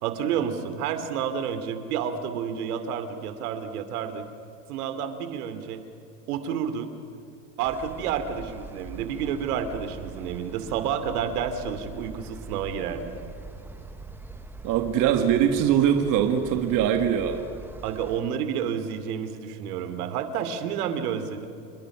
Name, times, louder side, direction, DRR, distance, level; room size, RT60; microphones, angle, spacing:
voice 1, 0.0-4.2 4.7-5.8 6.3-6.9 7.6-13.1 17.8-21.5, right 8 dB, 70° right, 9 dB, 2.8 m, -30 dB
sound 1, 7.6-18.2, right 2 dB, 5° right, 1.1 m, -43 dB
voice 2, 14.6-17.4, right 9 dB, 40° right, 6 dB, 1.8 m, -22 dB
29.5 x 21.0 x 6.1 m, 2.5 s
supercardioid pair, 135°, 46 cm